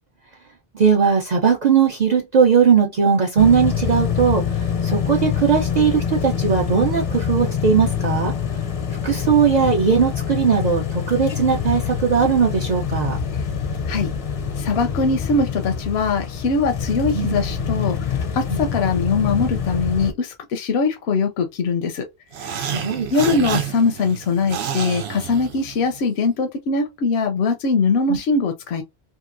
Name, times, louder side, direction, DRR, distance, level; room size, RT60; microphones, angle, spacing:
voice 1, 0.7-8.3 9.0-13.2 17.1-17.4 18.5-18.6 22.6-23.5 28.1-28.2, right 6 dB, 50° right, 0.6 m, -19 dB
sound 1, 3.4-20.1, left 7 dB, 45° left, 0.5 m, -25 dB
voice 2, 14.6-22.0 22.4-22.7 23.1-28.8, left 4 dB, 80° left, 0.8 m, -22 dB
sound 2, 22.3-26.0, right 8 dB, 80° right, 0.9 m, -29 dB
2.8 x 2.3 x 2.4 m
omnidirectional pair, 1.1 m